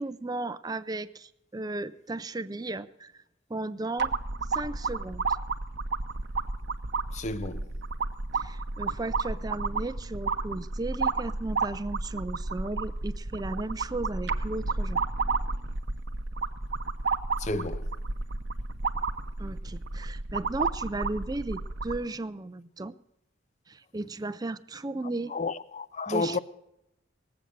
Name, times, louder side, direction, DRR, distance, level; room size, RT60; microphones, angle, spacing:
voice 1, 0.0-3.1 3.5-4.1 4.5-5.2 8.3-15.0 19.4-22.9 23.7-25.3 26.1-26.4, right 2 dB, 20° right, 0.4 m, -35 dB
sound 1, 4.0-22.0, right 3 dB, 60° right, 0.7 m, -31 dB
voice 2, 7.1-7.7 17.4-17.9 25.3-26.4, left 3 dB, 35° left, 0.6 m, -31 dB
19.5 x 7.9 x 6.7 m
head